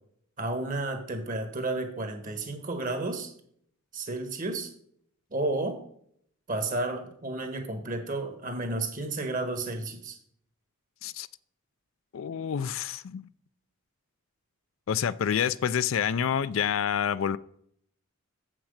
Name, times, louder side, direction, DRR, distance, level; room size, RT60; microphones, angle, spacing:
voice 1, 0.4-3.3 3.9-4.7 5.3-5.8 6.5-10.2, right 2 dB, 40° right, 6 dB, 1.4 m, -32 dB
voice 2, 12.1-13.3 14.9-17.4, left 8 dB, 65° left, 16 dB, 0.4 m, -28 dB
7.4 x 6.0 x 6.5 m, 0.66 s
head